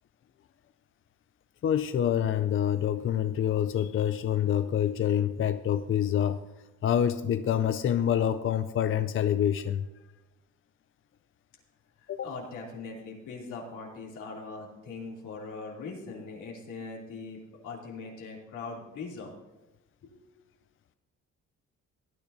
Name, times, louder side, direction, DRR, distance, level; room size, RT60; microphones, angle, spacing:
voice 1, 1.6-6.4 6.8-9.9 12.1-12.3, left 9 dB, 45° left, 11 dB, 0.5 m, -26 dB
voice 2, 12.2-19.3 20.0-20.2, left 4 dB, 85° left, -2 dB, 2.9 m, -41 dB
18.0 x 9.9 x 2.7 m, 1.1 s
cardioid pair, 90°, 30 cm